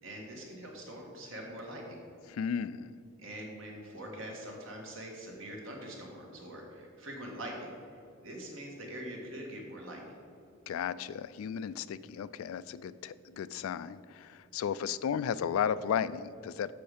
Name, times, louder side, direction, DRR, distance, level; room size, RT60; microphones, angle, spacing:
voice 1, 0.0-2.0 3.2-8.0 8.2-10.1, right 1 dB, 70° right, 0 dB, 1.6 m, -43 dB
voice 2, 2.3-2.9 10.7-16.7, left 8 dB, 80° left, 16 dB, 0.3 m, -34 dB
7.0 x 6.5 x 5.0 m, 2.5 s
head